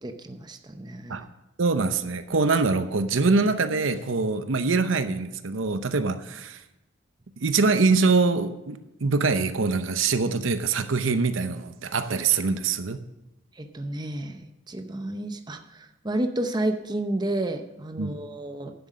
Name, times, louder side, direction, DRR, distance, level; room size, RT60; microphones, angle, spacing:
voice 1, 0.0-1.3 13.6-18.7, right 1 dB, 20° right, 7 dB, 0.7 m, -31 dB
voice 2, 1.6-6.6 7.4-13.0 18.0-18.1, right 4 dB, 80° right, 11 dB, 0.8 m, -24 dB
10.5 x 7.8 x 6.2 m, 0.95 s
head